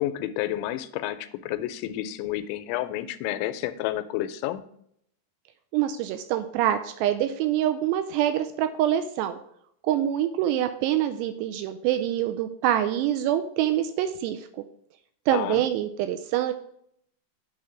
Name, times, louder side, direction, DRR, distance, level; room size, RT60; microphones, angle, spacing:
voice 1, 0.0-4.6 15.3-15.6, left 13 dB, 85° left, 12 dB, 2.9 m, -30 dB
voice 2, 5.7-9.4 9.8-14.5 15.3-16.5, right 11 dB, 85° right, 8 dB, 2.5 m, -25 dB
8.3 x 3.1 x 5.9 m, 0.69 s
omnidirectional pair, 5.2 m